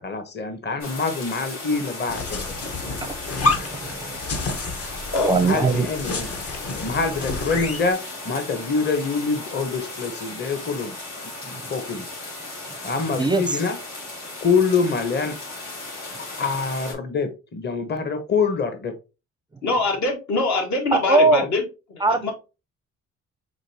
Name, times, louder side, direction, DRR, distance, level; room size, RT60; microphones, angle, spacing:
voice 1, 0.0-2.7 5.3-6.3 6.8-10.9 11.4-12.0 12.8-13.8 14.4-15.4 16.4-18.9, left 4 dB, 35° left, 1.0 m, -25 dB
sound 1, 0.8-16.9, left 2 dB, 85° left, 2.9 m, -36 dB
sound 2, 2.1-7.9, left 3 dB, 50° left, 1.2 m, -29 dB
voice 2, 3.4-4.4 5.2-5.9 11.6-11.7 13.2-13.6 20.9-21.5 22.0-22.3, right 3 dB, 15° right, 0.5 m, -21 dB
voice 3, 19.6-21.6 21.9-22.3, left 2 dB, 65° left, 1.8 m, -23 dB
5.1 x 3.6 x 2.8 m
cardioid pair, 90°, 30 cm